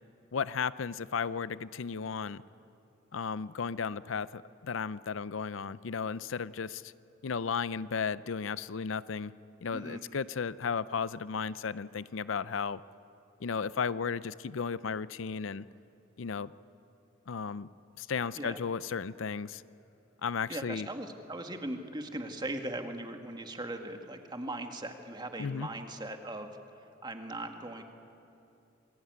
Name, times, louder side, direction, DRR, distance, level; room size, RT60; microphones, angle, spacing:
voice 1, 0.3-2.4 3.1-6.9 7.2-9.3 9.6-12.8 13.4-15.7 16.2-16.5 17.3-17.7 18.0-19.6 20.2-20.9 25.4-25.7, left 6 dB, 75° left, 16 dB, 0.5 m, -34 dB
voice 2, 9.7-10.0 18.4-18.6 20.5-26.5 27.0-27.8, right 1 dB, 20° right, 5 dB, 1.9 m, -39 dB
28.0 x 21.0 x 9.5 m, 2.7 s
head